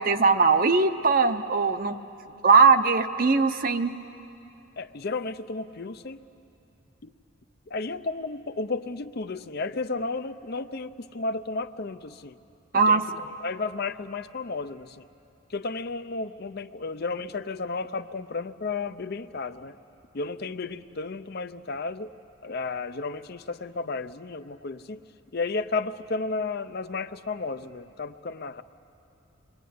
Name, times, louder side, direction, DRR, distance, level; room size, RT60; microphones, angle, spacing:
voice 1, 0.0-2.0 2.4-3.9 12.7-13.0, right 4 dB, 40° right, 9 dB, 0.8 m, -20 dB
voice 2, 4.8-6.2 7.0-7.1 7.7-12.3 12.7-15.1 15.5-19.8 20.1-22.1 22.4-25.0 25.3-28.6, left 3 dB, 45° left, 11 dB, 0.6 m, -33 dB
28.0 x 22.5 x 9.4 m, 2.8 s
head